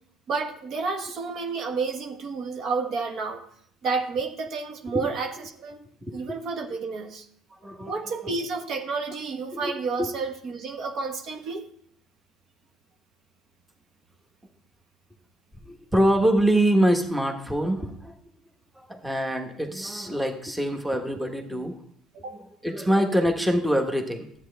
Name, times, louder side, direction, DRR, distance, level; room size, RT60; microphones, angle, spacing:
voice 1, 0.3-3.4 3.8-5.8 6.1-7.3 7.9-11.6 22.2-22.3, right 4 dB, 55° right, 5 dB, 1.3 m, -30 dB
voice 2, 6.0-6.4 7.5-8.3 9.5-10.1 15.7-18.1 18.8-21.8 22.3-24.3, right 1 dB, 5° right, 5 dB, 1.3 m, -25 dB
12.0 x 8.7 x 3.4 m, 0.65 s
supercardioid pair, 100°, 0 cm